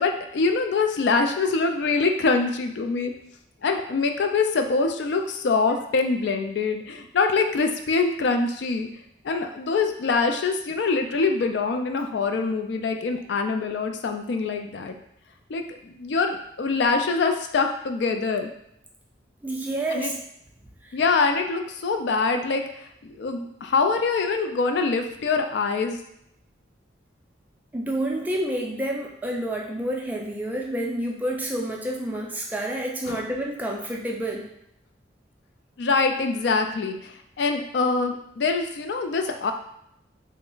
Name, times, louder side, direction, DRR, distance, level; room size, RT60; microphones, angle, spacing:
voice 1, 0.0-3.1 3.6-8.9 9.2-15.0 15.5-18.5 19.9-20.2 20.9-26.0 33.1-33.2 35.8-39.5, left 4 dB, 65° left, 5 dB, 0.3 m, -24 dB
voice 2, 19.4-20.2 20.8-20.9 27.7-34.5, right 1 dB, 10° right, -1 dB, 0.3 m, -29 dB
3.3 x 2.0 x 3.8 m, 0.78 s
head